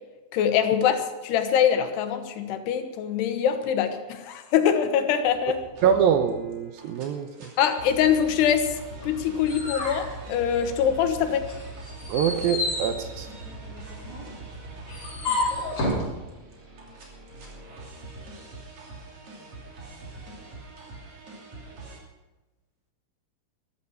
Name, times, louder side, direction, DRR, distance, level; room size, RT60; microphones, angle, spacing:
voice 1, 0.3-5.6 7.6-8.7 9.0-11.5, left 8 dB, 80° left, 8 dB, 3.2 m, -23 dB
sound 1, 5.2-22.0, right 2 dB, 45° right, 3.9 m, -43 dB
voice 2, 5.8-7.5 12.1-13.3, right 8 dB, 75° right, 8 dB, 2.4 m, -24 dB
sound 2, 9.0-11.0 11.4-16.1, left 2 dB, 35° left, 5.3 m, -31 dB
14.5 x 13.5 x 5.7 m, 1.1 s
omnidirectional pair, 4.7 m